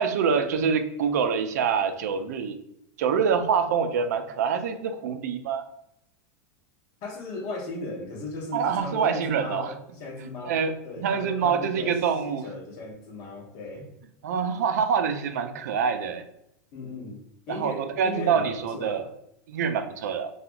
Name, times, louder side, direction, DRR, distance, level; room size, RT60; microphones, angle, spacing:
voice 1, 0.0-2.6 3.0-5.6 8.5-9.7 10.4-12.4 14.2-16.2 17.5-19.1 19.5-20.3, right 6 dB, 90° right, 8 dB, 0.4 m, -25 dB
voice 2, 7.0-13.9 16.7-17.2 17.5-19.1, left 2 dB, 40° left, 2 dB, 0.7 m, -37 dB
2.8 x 2.3 x 2.5 m, 0.77 s
supercardioid pair, 160°, 9 cm